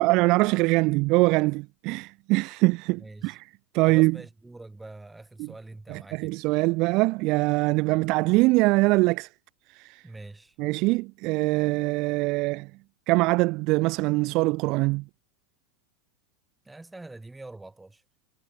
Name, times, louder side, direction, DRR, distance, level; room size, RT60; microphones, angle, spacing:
voice 1, 0.0-3.4 3.7-4.2 5.4-5.5 5.9-9.3 9.7-10.0 10.6-12.7 13.1-15.0, right 23 dB, 40° right, 1.5 m, -23 dB
voice 2, 3.0-3.4 3.8-6.4 10.0-10.5 16.6-18.0, right 2 dB, 5° right, 6.7 m, -44 dB
supercardioid pair, 165°, 0 cm